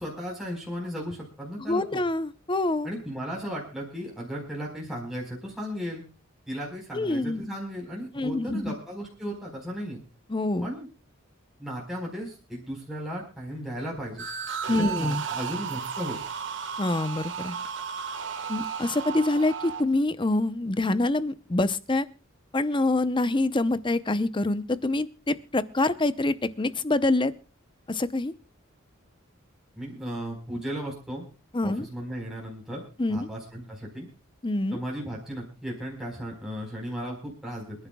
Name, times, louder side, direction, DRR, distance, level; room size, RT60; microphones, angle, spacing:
voice 1, 0.0-2.0 2.8-6.0 6.5-10.0 10.6-10.9 11.6-14.2 14.8-16.2 29.8-31.2 31.6-34.1 34.7-37.9, equal, ahead, -3 dB, 4.3 m, -35 dB
voice 2, 1.6-2.9 6.9-7.4 8.1-8.7 10.3-10.7 14.7-15.2 16.8-17.6 18.5-22.1 22.5-27.3 27.9-28.3 31.5-31.9 33.0-33.3 34.4-34.8, left 2 dB, 25° left, 14 dB, 0.7 m, -26 dB
sound 1, 14.2-19.8, right 7 dB, 60° right, 1.5 m, -34 dB
27.5 x 11.0 x 2.3 m, 0.33 s
head